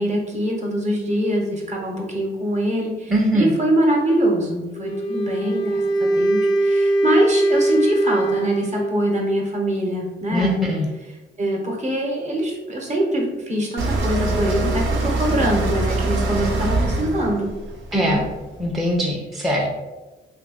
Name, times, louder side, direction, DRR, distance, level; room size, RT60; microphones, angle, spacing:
voice 1, 0.0-10.8 11.4-17.5 18.0-18.2, right 1 dB, 35° right, -1 dB, 0.9 m, -23 dB
voice 2, 3.1-3.5 10.3-10.9 17.9-18.2 18.6-19.7, equal, ahead, -2 dB, 0.5 m, -21 dB
Wind instrument woodwind instrument, 4.7-9.1, right 1 dB, 85° left, 0.5 m, -21 dB
sound 1, 13.8-18.7, right 2 dB, 80° right, 0.7 m, -23 dB
2.7 x 2.5 x 3.8 m, 1.1 s
cardioid pair, 90°, 20 cm